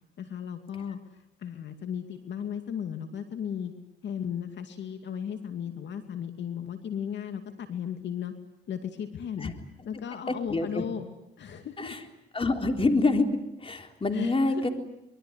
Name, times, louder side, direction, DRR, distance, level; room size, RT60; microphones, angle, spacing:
voice 1, 0.2-1.0 1.4-3.7 4.0-8.3 8.7-9.5 9.8-11.0 11.4-12.0 14.1-14.7, left 8 dB, 65° left, 7 dB, 2.6 m, -35 dB
voice 2, 10.3-10.8 11.8-12.0 12.3-13.3 13.6-14.7, left 3 dB, 25° left, 5 dB, 3.8 m, -26 dB
24.5 x 23.5 x 9.8 m, 0.84 s
cardioid pair, 90°, 20 cm